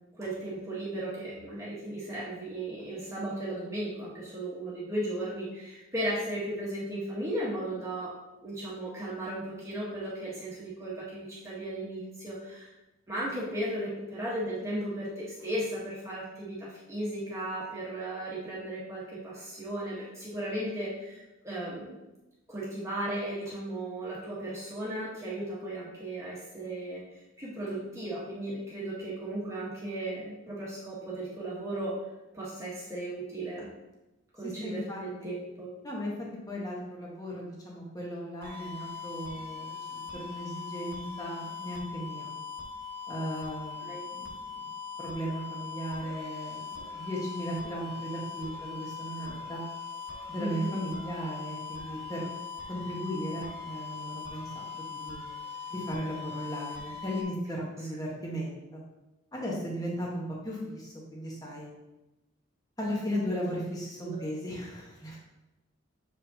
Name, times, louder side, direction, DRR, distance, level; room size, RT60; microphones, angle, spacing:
voice 1, 0.0-8.1 8.4-12.7 13.1-21.9 22.5-27.0 27.4-32.0 32.3-33.7 34.3-35.7 43.8-44.0 50.4-50.8 64.0-64.2, right 1 dB, 15° right, -7 dB, 1.3 m, -36 dB
voice 2, 34.4-35.3 35.8-36.1 36.5-42.3 43.1-44.7 45.0-49.6 50.3-52.3 52.7-55.2 55.7-58.8 59.3-61.7 62.8-65.2, equal, 20° left, -4 dB, 1.3 m, -36 dB
sound 1, 38.4-57.2, left 5 dB, 50° right, 1.2 m, -41 dB
7.2 x 5.0 x 2.9 m, 0.99 s
head